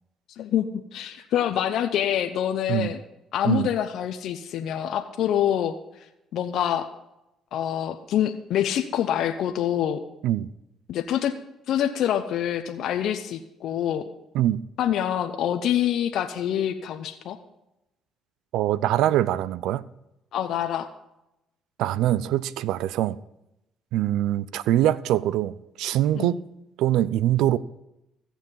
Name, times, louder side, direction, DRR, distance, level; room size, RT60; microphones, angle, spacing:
voice 1, 0.4-3.0 3.3-5.7 6.3-6.9 7.5-10.0 10.9-11.3 11.7-14.1 14.8-17.4 20.3-20.9 26.1-26.4, left 10 dB, 70° left, 0.7 m, -26 dB
voice 2, 18.5-19.8 21.8-23.2 23.9-26.4 26.8-27.6, right 13 dB, 80° right, 0.4 m, -23 dB
14.5 x 7.2 x 5.6 m
supercardioid pair, 80°, 0 cm